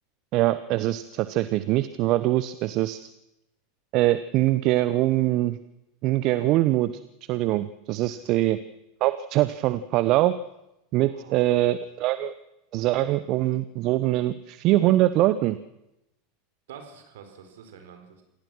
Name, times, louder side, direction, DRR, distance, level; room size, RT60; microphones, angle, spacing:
voice 1, 0.3-3.0 3.9-5.6 6.0-7.0 7.3-8.6 9.0-10.4 10.9-12.3 12.7-15.6, right 15 dB, 50° right, 14 dB, 0.8 m, -23 dB
voice 2, 11.1-11.6 16.7-18.2, right 7 dB, 70° right, 7 dB, 4.3 m, -47 dB
27.0 x 17.0 x 6.2 m, 0.89 s
hypercardioid pair, 85°, 0 cm